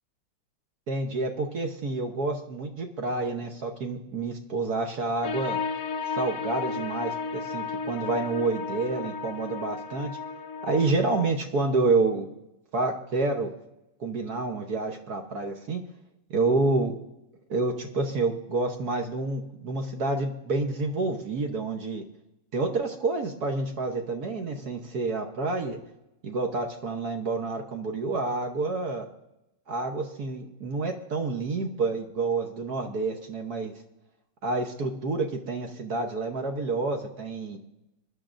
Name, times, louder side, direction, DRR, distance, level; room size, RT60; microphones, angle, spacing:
voice 1, 0.9-5.6 6.2-10.1 10.6-12.3 12.7-13.5 14.0-15.8 16.3-16.9 17.5-22.0 22.5-25.8 26.2-29.1 29.7-33.7 34.4-37.6, right 3 dB, 55° right, 4 dB, 1.3 m, -28 dB
sound 1, 5.2-11.3, left 5 dB, 65° left, 0.9 m, -33 dB
22.5 x 11.0 x 2.6 m, 0.89 s
omnidirectional pair, 2.3 m